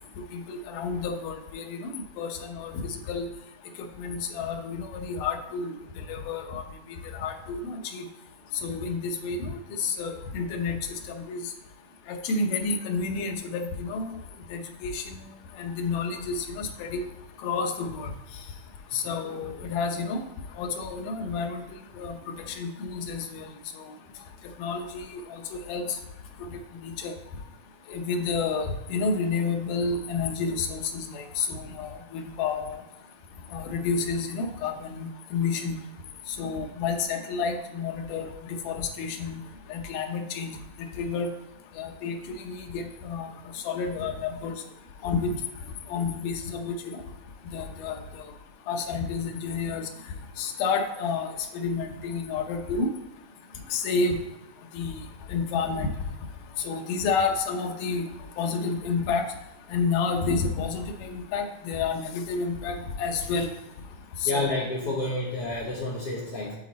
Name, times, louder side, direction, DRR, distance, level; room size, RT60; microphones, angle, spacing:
voice 1, 0.3-1.9 2.2-2.7 3.1-3.3 4.0-5.7 6.1-6.6 7.2-8.1 8.6-10.8 11.2-11.4 12.1-14.1 14.5-15.0 15.6-17.0 17.4-18.1 18.9-20.2 20.6-21.6 22.0-22.1 22.5-23.4 24.6-25.2 25.7-25.8 26.8-27.1 27.9-31.5 31.8-32.8 33.5-35.8 36.4-38.3 38.7-39.4 39.7-40.5 41.0-41.3 41.8-42.2 42.4-43.3 43.7-44.5 45.0-45.3 45.9-46.7 47.5-48.0 48.7-49.8 50.4-51.3 51.5-52.9 53.7-54.2 54.7-54.9 55.3-55.9 56.6-58.0 58.4-59.2 59.7-63.5 64.2-64.5, left 4 dB, 90° left, 4 dB, 2.5 m, -30 dB
voice 2, 64.3-66.5, left 2 dB, 55° left, -5 dB, 1.9 m, -29 dB
11.0 x 4.1 x 4.1 m, 0.97 s
omnidirectional pair, 3.7 m